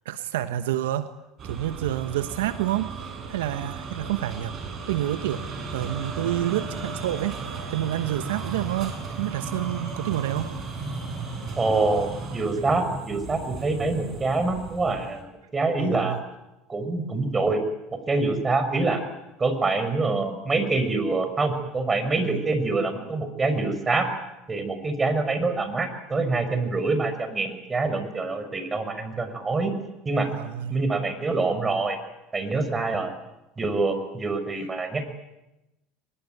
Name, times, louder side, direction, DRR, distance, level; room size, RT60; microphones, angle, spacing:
voice 1, 0.0-1.1 1.4-2.9 3.3-7.4 7.7-10.5 15.8-16.2 22.2-22.4 30.4-30.7, right 13 dB, 80° right, 11 dB, 1.1 m, -28 dB
sound 1, 1.4-15.2, right 4 dB, 45° right, 7.7 m, -35 dB
voice 2, 11.6-16.2 16.7-17.6 17.9-19.0 19.4-24.1 24.5-29.7 30.0-30.3 30.7-32.0 32.3-33.1 33.6-35.1, right 3 dB, 25° right, 9 dB, 6.1 m, -25 dB
24.0 x 21.5 x 9.3 m, 0.98 s
hypercardioid pair, 80°, 0 cm